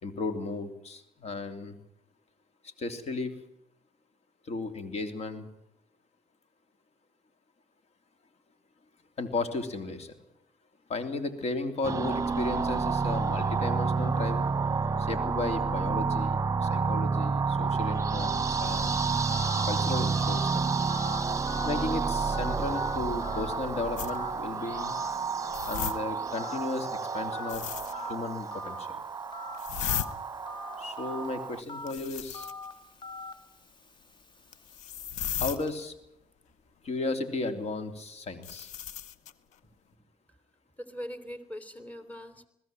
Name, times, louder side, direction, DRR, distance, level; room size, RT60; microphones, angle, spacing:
voice 1, 0.0-1.8 2.6-3.3 4.4-5.4 9.2-10.2 10.9-14.5 15.0-19.2 19.6-20.7 21.6-25.0 25.6-27.6 28.1-29.0 30.8-32.5 35.4-35.9 36.8-38.7, left 3 dB, 60° left, 9 dB, 3.1 m, -34 dB
sound 1, 11.8-31.6, right 5 dB, 25° right, 1.0 m, -30 dB
Telephone, 18.7-35.7, left 3 dB, 40° left, 2.6 m, -45 dB
sound 2, 24.0-24.2 25.5-26.0 27.5-28.1 29.5-30.1 31.9-32.7 34.5-35.6 38.4-39.3, left 10 dB, 85° left, 1.0 m, -35 dB
voice 2, 40.8-42.5, equal, 10° left, 11 dB, 3.3 m, -41 dB
21.0 x 16.0 x 9.1 m, 0.81 s
supercardioid pair, 55°, 12 cm